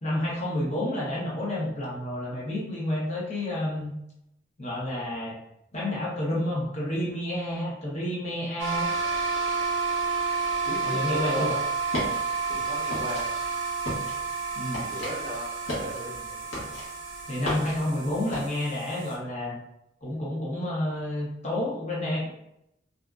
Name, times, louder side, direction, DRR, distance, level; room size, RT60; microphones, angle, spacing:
voice 1, 0.0-3.9 4.6-5.4 5.7-8.9 10.8-11.5 14.6-14.9 17.3-19.6 20.0-22.3, left 1 dB, 35° left, -6 dB, 0.7 m, -30 dB
sound 1, 8.6-19.1, right 5 dB, 75° right, 0.6 m, -30 dB
voice 2, 10.6-11.6 12.5-13.6 14.9-16.5, equal, 30° right, -3 dB, 0.5 m, -36 dB
sound 2, 11.7-18.4, left 1 dB, 80° left, 1.0 m, -36 dB
2.5 x 2.3 x 2.2 m, 0.82 s
head